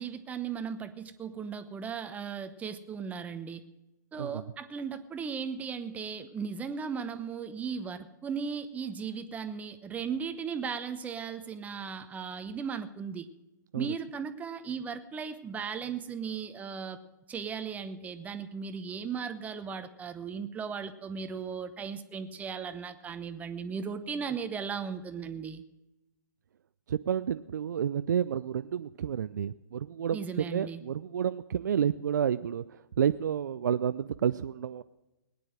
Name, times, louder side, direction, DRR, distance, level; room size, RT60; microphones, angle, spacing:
voice 1, 0.0-3.6 4.1-13.3 13.8-17.0 17.3-25.6 30.1-30.8, right 6 dB, 15° right, 9 dB, 0.9 m, -37 dB
voice 2, 26.9-34.8, right 8 dB, 65° right, 13 dB, 0.4 m, -30 dB
19.0 x 9.5 x 6.3 m, 0.99 s
figure-of-eight pair, 115°, 10 cm